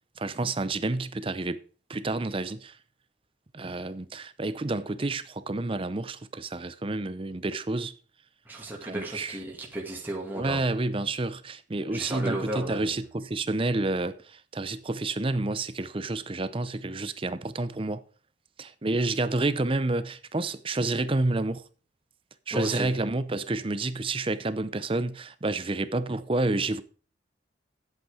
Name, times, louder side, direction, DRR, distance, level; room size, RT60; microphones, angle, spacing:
voice 1, 0.2-1.6 1.9-2.8 3.5-7.9 8.8-9.4 10.3-18.0 18.6-21.6 22.5-26.8, right 2 dB, 30° right, 0.6 m, -29 dB
voice 2, 8.5-10.6 11.9-13.0 22.5-22.9, right 1 dB, 10° right, 2.2 m, -34 dB
10.5 x 8.3 x 4.9 m
head